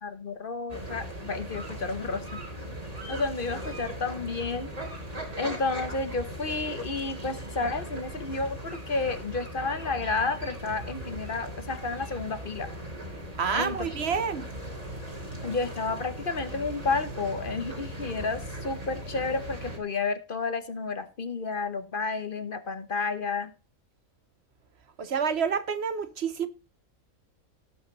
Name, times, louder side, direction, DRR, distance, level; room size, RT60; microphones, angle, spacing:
voice 1, 0.0-2.4 3.1-4.7 5.4-12.7 13.5-13.9 15.4-23.5, left 3 dB, 40° left, 1.1 m, -31 dB
sound 1, 0.7-19.8, equal, 25° right, 2.9 m, -39 dB
voice 2, 13.4-14.5 25.0-26.5, right 6 dB, 55° right, 1.1 m, -28 dB
17.5 x 5.9 x 4.0 m
omnidirectional pair, 1.4 m